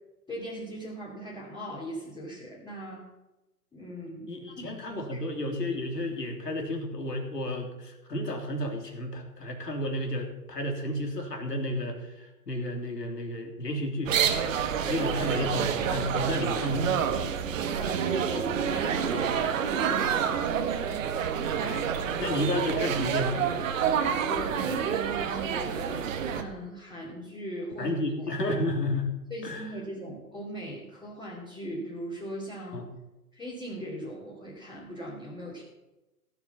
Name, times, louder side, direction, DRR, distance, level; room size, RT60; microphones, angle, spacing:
voice 1, 0.3-3.0 3.7-4.3 4.7-5.2 17.8-20.5 24.2-27.9 28.2-28.6 29.3-32.8 33.3-35.6, equal, 10° left, -5 dB, 2.7 m, -39 dB
voice 2, 4.3-14.1 14.9-17.0 21.6-23.5 27.8-29.1 29.4-29.7 32.7-32.9, left 1 dB, 85° left, 3 dB, 3.3 m, -32 dB
sound 1, 14.1-26.4, right 8 dB, 55° right, 1.6 m, -28 dB
16.5 x 7.2 x 7.2 m, 1.0 s
figure-of-eight pair, 125°, 47 cm